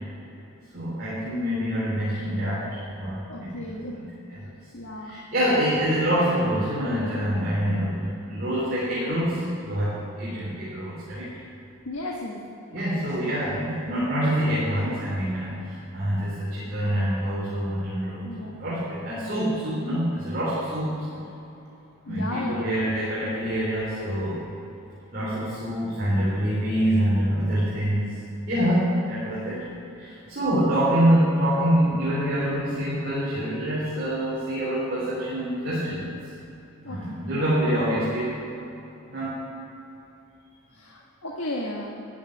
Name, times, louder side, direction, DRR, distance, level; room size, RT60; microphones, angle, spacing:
voice 1, 0.7-3.6 4.0-4.5 5.0-11.3 12.7-21.3 22.0-24.4 25.1-28.2 28.5-29.7 30.0-36.2 36.8-38.4 39.1-39.4, equal, 45° right, -9 dB, 3.5 m, -26 dB
voice 2, 3.3-4.0 4.7-5.2 11.8-12.4 12.8-12.9 18.2-18.5 22.1-22.7 36.8-37.2 40.7-41.9, left 1 dB, 75° left, -2 dB, 1.5 m, -34 dB
13.5 x 6.5 x 9.9 m, 3.0 s
head